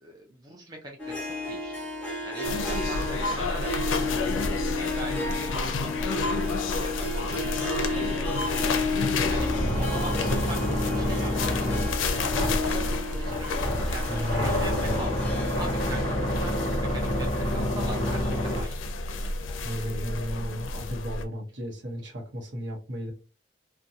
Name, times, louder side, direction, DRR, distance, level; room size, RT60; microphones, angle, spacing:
voice 1, 0.0-1.9 2.2-15.1 15.6-19.5, right 2 dB, 20° right, 0 dB, 0.5 m, -42 dB
Harp, 1.0-17.5, left 2 dB, 10° left, 1.1 m, -33 dB
sound 1, 2.4-21.2, left 3 dB, 90° left, 0.4 m, -31 dB
sound 2, 9.0-18.6, left 1 dB, 30° left, 0.8 m, -29 dB
voice 2, 9.6-10.3 10.6-11.1 14.0-15.2 19.6-23.1, equal, 70° right, 1 dB, 0.9 m, -35 dB
2.6 x 2.2 x 2.6 m, 0.32 s
head